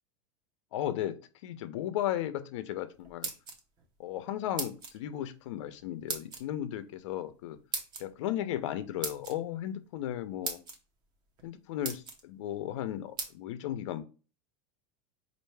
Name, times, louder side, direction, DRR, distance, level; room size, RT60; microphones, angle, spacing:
voice 1, 0.7-3.3 4.0-7.6 8.0-10.6 11.4-14.0, left 12 dB, 65° left, 11 dB, 0.6 m, -35 dB
sound 1, 3.0-3.9 4.6-5.0 6.1-6.4 7.7-8.0 9.0-9.4 10.1-10.2 10.4-10.8 11.4-11.5 11.8-12.2 13.2-13.3, right 4 dB, 25° right, 0.7 m, -37 dB
4.5 x 2.5 x 3.2 m, 0.34 s
supercardioid pair, 165°, 16 cm